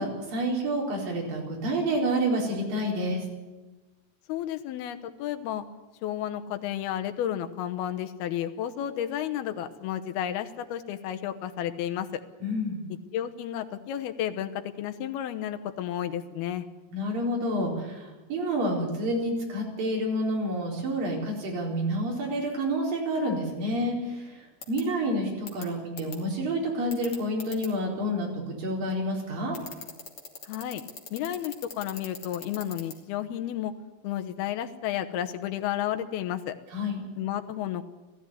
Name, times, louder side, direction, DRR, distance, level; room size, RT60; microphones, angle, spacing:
voice 1, 0.0-3.2 12.4-12.8 16.9-29.6 36.7-37.0, equal, 65° right, -2 dB, 6.0 m, -29 dB
voice 2, 4.3-5.6 6.0-12.2 13.1-16.7 30.4-30.8 31.1-33.7 34.0-36.6 37.2-37.8, left 11 dB, 85° left, 8 dB, 2.9 m, -32 dB
sound 1, 24.6-24.8 25.5-25.6 26.0-26.2 26.9-27.7 29.5-32.9, left 5 dB, 40° left, 3.1 m, -39 dB
18.0 x 14.5 x 9.8 m, 1.2 s
omnidirectional pair, 4.4 m